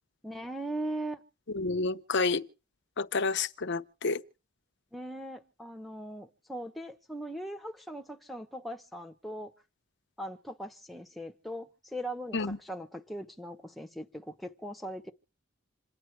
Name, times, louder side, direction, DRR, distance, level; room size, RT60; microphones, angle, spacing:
voice 1, 0.2-1.2 4.9-9.5 10.2-15.1, right 1 dB, ahead, 1.1 m, -39 dB
voice 2, 1.5-2.4 3.0-4.2 12.3-12.6, left 4 dB, 60° left, 0.8 m, -29 dB
27.5 x 9.6 x 4.6 m
head